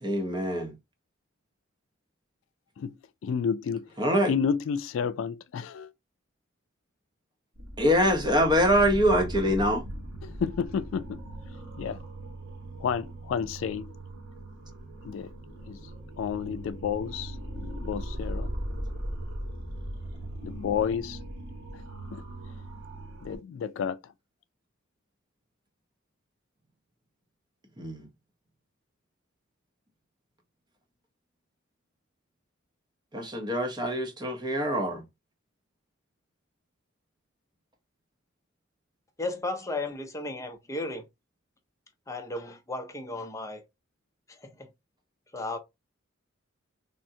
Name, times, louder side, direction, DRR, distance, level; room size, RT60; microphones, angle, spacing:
voice 1, 0.0-0.7 4.0-4.3 7.8-9.8 27.8-28.0 33.1-35.0, equal, 20° right, 0.7 m, -24 dB
voice 2, 3.2-3.8 4.3-5.9 10.2-11.2 11.8-12.0 12.8-13.9 15.0-15.3 15.7-15.8 16.2-18.5 20.4-21.2 22.1-22.2 23.2-24.0, left 7 dB, 70° left, 0.3 m, -30 dB
sound 1, 7.6-23.4, right 1 dB, 65° right, 1.2 m, -39 dB
voice 3, 39.2-41.0 42.1-43.6 44.3-44.7 45.3-45.6, left 2 dB, 15° left, 0.6 m, -34 dB
3.5 x 2.1 x 2.7 m
head